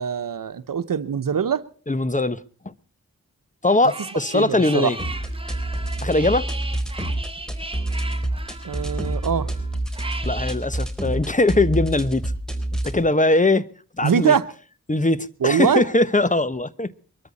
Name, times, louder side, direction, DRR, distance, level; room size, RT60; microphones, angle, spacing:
voice 1, 0.0-1.6 4.3-4.9 8.6-9.5 14.0-14.5 15.4-15.8, right 7 dB, 90° right, 0.9 m, -22 dB
voice 2, 1.9-2.7 3.6-5.0 6.0-6.5 10.2-12.3 12.8-13.6 14.0-14.3 14.9-16.9, left 2 dB, 25° left, 1.1 m, -21 dB
sound 1, 3.6-10.5, right 2 dB, 15° right, 1.9 m, -37 dB
sound 2, 5.0-13.0, right 1 dB, ahead, 4.0 m, -28 dB
23.0 x 13.5 x 4.1 m
cardioid pair, 45°, 32 cm